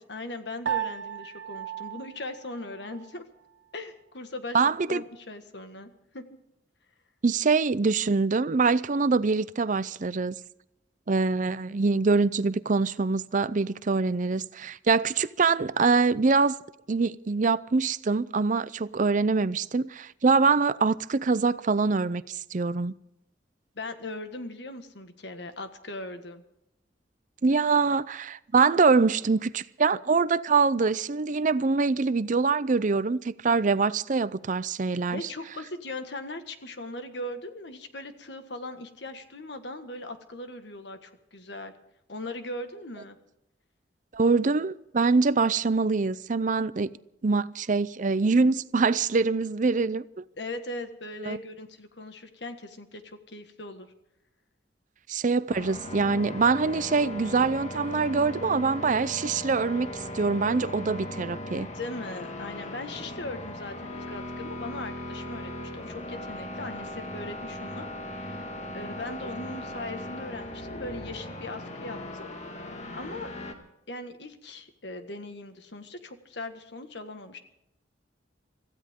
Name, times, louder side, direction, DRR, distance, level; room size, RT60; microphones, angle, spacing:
voice 1, 0.0-3.2 3.7-6.4 23.7-26.4 35.1-41.7 42.1-43.2 50.4-53.9 61.7-72.3 72.9-73.3 73.9-77.4, left 2 dB, 70° left, 1.6 m, -39 dB
Piano, 0.7-3.2, right 10 dB, 75° right, 0.8 m, -35 dB
voice 2, 4.5-5.0 7.2-10.4 11.1-16.6 16.9-23.0 27.4-35.2 44.1-46.9 47.2-50.0 51.2-51.4 55.1-61.7, right 4 dB, 45° right, 0.5 m, -24 dB
sound 1, 55.5-73.5, left 1 dB, 40° left, 1.8 m, -38 dB
25.0 x 15.5 x 3.7 m
head